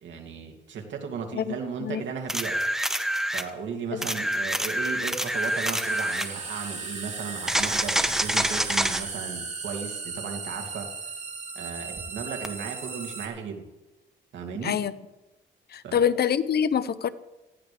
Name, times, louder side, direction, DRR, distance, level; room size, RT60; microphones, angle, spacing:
voice 1, 0.0-2.6 3.3-10.9 11.5-13.6 14.3-14.7 15.8-16.0, right 6 dB, 70° right, 2 dB, 2.7 m, -35 dB
voice 2, 1.3-2.0 3.9-4.0 14.6-14.9 15.7-17.1, left 8 dB, 55° left, 15 dB, 0.8 m, -26 dB
sound 1, 2.3-3.5 4.0-6.3 7.5-9.0 12.4-12.5, equal, ahead, 1.2 m, -26 dB
sound 2, 2.8-2.9 4.9-13.3, right 4 dB, 35° right, 3.2 m, -37 dB
18.5 x 15.5 x 3.5 m, 1.0 s
cardioid pair, 90°, 20 cm